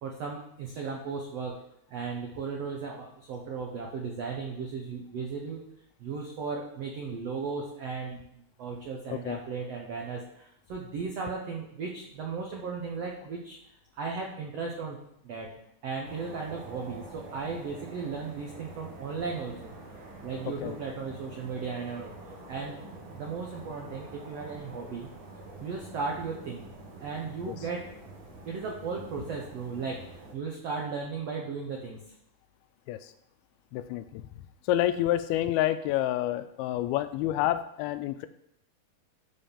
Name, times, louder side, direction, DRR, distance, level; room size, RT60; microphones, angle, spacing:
voice 1, 0.0-1.6 1.9-5.6 6.0-13.6 13.9-15.0 15.2-15.5 15.8-19.7 20.2-22.1 22.5-22.8 23.1-25.1 25.6-26.7 27.0-27.8 28.4-32.0, right 5 dB, 80° right, 0 dB, 1.4 m, -36 dB
City ambient from distance + heli, 16.0-30.3, right 2 dB, 60° right, 1.3 m, -46 dB
voice 2, 20.5-20.8 27.5-27.6 32.9-33.1 33.7-34.2 34.7-38.3, left 13 dB, 85° left, 11 dB, 2.4 m, -28 dB
12.5 x 4.3 x 5.6 m, 0.74 s
omnidirectional pair, 4.5 m